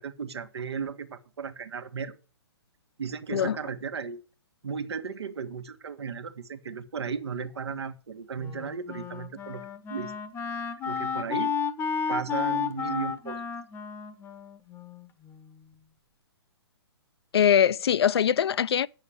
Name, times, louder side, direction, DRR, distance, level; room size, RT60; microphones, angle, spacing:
voice 1, 0.0-2.2 3.0-4.2 4.6-9.6 9.9-10.1 10.8-11.5 12.1-13.4, right 6 dB, 75° right, 1.4 m, -35 dB
Wind instrument woodwind instrument, 8.4-15.6, left 6 dB, 15° left, 0.9 m, -33 dB
voice 2, 17.3-18.9, left 9 dB, 70° left, 0.5 m, -22 dB
8.8 x 6.4 x 7.6 m
hypercardioid pair, 130°, 14 cm